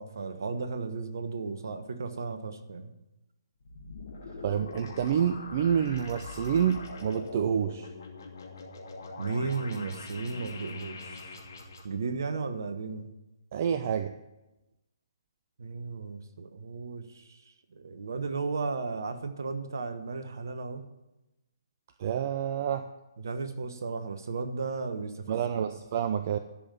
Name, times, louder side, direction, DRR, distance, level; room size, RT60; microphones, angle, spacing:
voice 1, 0.0-2.9 9.2-11.4 11.8-13.1 15.6-17.4 17.7-20.8 23.2-25.7, right 4 dB, 55° right, 9 dB, 1.2 m, -35 dB
sound 1, 3.6-11.8, left 3 dB, 55° left, 2.7 m, -42 dB
voice 2, 4.4-7.9 13.5-14.1 22.0-22.9 25.3-26.4, right 8 dB, 40° right, 9 dB, 0.5 m, -28 dB
12.0 x 5.5 x 8.9 m, 0.99 s
figure-of-eight pair, 135°, 2 cm